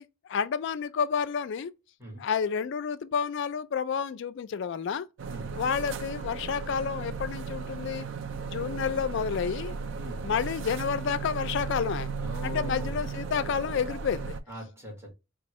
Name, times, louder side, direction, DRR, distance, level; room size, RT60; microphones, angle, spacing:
voice 1, 0.0-1.7 2.2-5.1 5.5-8.1 8.4-9.7 10.2-12.1 12.4-14.3, left 6 dB, 60° left, 0.3 m, -30 dB
sound 1, 5.2-14.4, right 5 dB, 65° right, 0.4 m, -35 dB
voice 2, 9.9-10.3 12.2-13.0 14.5-15.1, equal, 15° right, 1.6 m, -41 dB
3.5 x 2.4 x 3.0 m
head